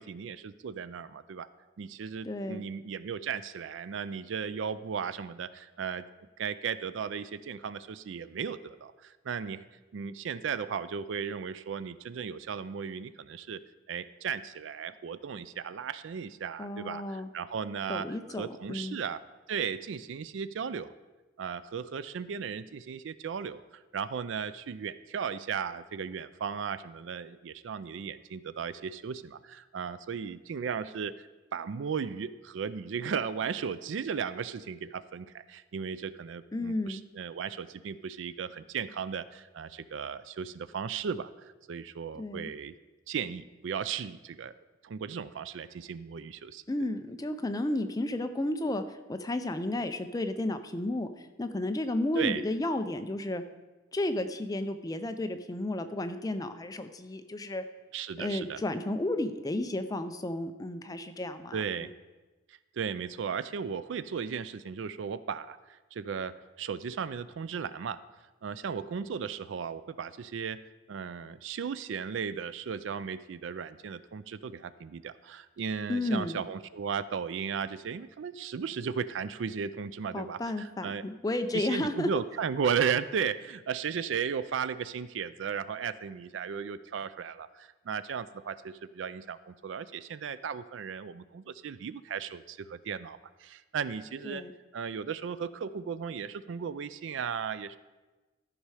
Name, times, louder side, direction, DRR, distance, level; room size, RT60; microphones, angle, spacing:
voice 1, 0.0-1.5 1.8-6.1 6.4-9.6 9.9-13.6 13.9-18.1 18.4-19.2 19.5-20.9 21.4-31.1 31.5-42.7 43.1-44.5 44.8-46.6 52.1-52.4 57.9-58.6 61.5-61.9 62.5-68.0 68.4-70.6 70.9-81.0 81.5-94.4 94.7-97.8, right 6 dB, 70° right, 15 dB, 0.4 m, -36 dB
voice 2, 2.2-2.7 16.6-17.3 17.9-19.0 36.5-37.0 42.1-42.5 46.7-48.8 49.1-51.1 51.4-53.4 53.9-57.6 58.2-61.9 75.9-76.4 80.1-82.1 94.2-94.5, left 1 dB, 20° left, 8 dB, 0.4 m, -32 dB
13.5 x 5.5 x 4.8 m, 1.2 s
head